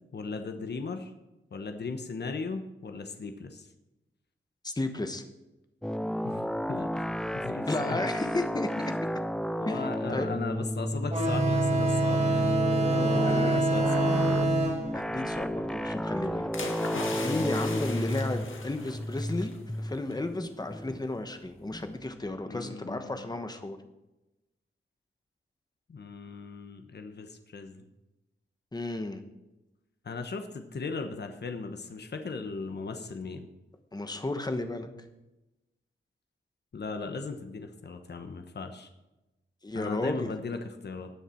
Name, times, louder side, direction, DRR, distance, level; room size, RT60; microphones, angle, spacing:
voice 1, 0.1-1.1 1.5-3.7 6.2-8.0 8.9-9.0 9.6-14.4 17.1-17.5 22.5-23.3 25.9-27.9 30.0-33.5 36.7-38.9 39.7-41.1, left 4 dB, 55° left, 6 dB, 1.0 m, -38 dB
voice 2, 4.6-5.2 7.7-8.9 9.6-10.3 13.2-13.6 14.9-16.5 17.2-23.8 28.7-29.2 33.9-34.9 39.6-40.3, left 2 dB, 20° left, 7 dB, 1.1 m, -33 dB
sound 1, 5.8-22.3, equal, 5° left, 0.3 m, -33 dB
sound 2, 11.1-16.3, right 2 dB, 30° right, 2.2 m, -26 dB
sound 3, 16.5-19.6 19.9-20.1, left 4 dB, 75° left, 1.8 m, -39 dB
19.0 x 6.6 x 4.5 m, 0.99 s
wide cardioid pair, 140°, 21 cm